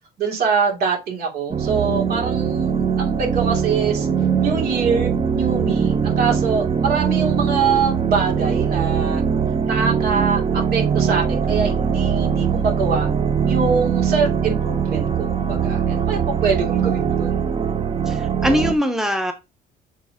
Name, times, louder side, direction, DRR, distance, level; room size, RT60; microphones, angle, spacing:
voice 1, 0.2-4.1 4.4-9.2 9.6-10.4 10.7-13.1 13.5-17.4, right 5 dB, 65° right, 2.9 m, -24 dB
sound 1, 1.5-18.7, right 7 dB, 35° right, 0.9 m, -21 dB
voice 2, 18.1-19.3, equal, ahead, 0.9 m, -21 dB
6.7 x 3.9 x 3.6 m
cardioid pair, 110°, 17 cm